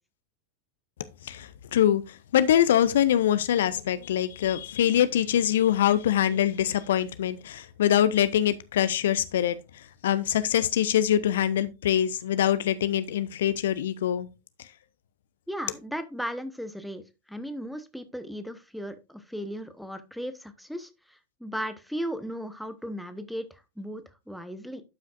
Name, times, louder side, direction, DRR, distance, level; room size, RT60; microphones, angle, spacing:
voice 1, 1.2-14.3, left 10 dB, 60° left, 0.5 m, -24 dB
voice 2, 15.5-17.0 17.3-24.8, equal, ahead, 1.0 m, -36 dB
12.0 x 5.7 x 2.5 m
figure-of-eight pair, 90°, 0 cm